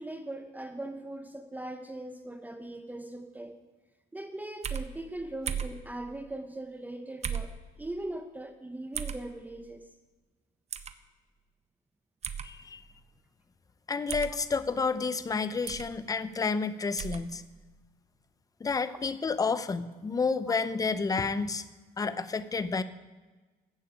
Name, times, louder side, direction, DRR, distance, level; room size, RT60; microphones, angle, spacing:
voice 1, 0.0-3.6 4.1-9.9 16.1-16.2 18.9-19.0 19.5-19.6 20.5-20.6, right 1 dB, 10° right, 7 dB, 0.8 m, -40 dB
sound 1, 4.6-4.9 5.5-5.8 7.2-7.5 8.9-9.2 10.7-10.9 12.2-12.5 14.1-14.3 15.7-15.9 17.0-17.2, right 8 dB, 40° right, 0.7 m, -34 dB
voice 2, 12.4-12.8 13.9-17.4 18.6-21.6 22.0-22.8, left 4 dB, 20° left, 13 dB, 0.6 m, -30 dB
13.5 x 8.5 x 5.1 m, 1.2 s
cardioid pair, 110°, 17 cm